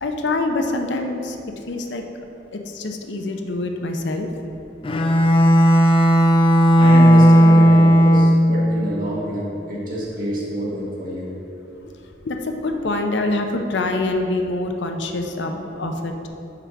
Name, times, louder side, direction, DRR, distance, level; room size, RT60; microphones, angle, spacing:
voice 1, 0.0-1.4 1.7-2.0 2.5-4.3 12.2-16.3, left 2 dB, 80° left, 4 dB, 0.6 m, -25 dB
Bowed string instrument, 4.8-8.7, equal, 30° left, 0.4 m, -13 dB
voice 2, 6.8-11.3, equal, 50° right, -5 dB, 1.7 m, -27 dB
5.8 x 4.6 x 5.9 m, 2.8 s
head